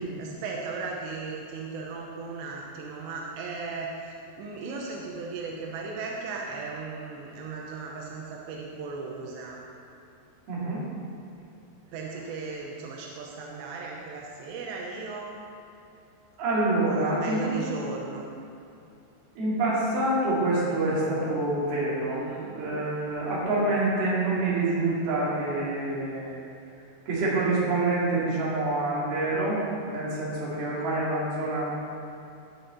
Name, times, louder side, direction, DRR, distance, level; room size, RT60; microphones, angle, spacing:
voice 1, 0.0-9.6 11.9-15.3 16.9-18.3 22.1-22.5 30.4-30.8, right 4 dB, 90° right, -1 dB, 3.1 m, -36 dB
voice 2, 10.5-10.8 16.4-17.5 19.4-22.2 22.5-26.4 27.1-31.7, right 2 dB, 60° right, -7 dB, 4.3 m, -27 dB
17.5 x 6.3 x 4.1 m, 2.6 s
omnidirectional pair, 5.0 m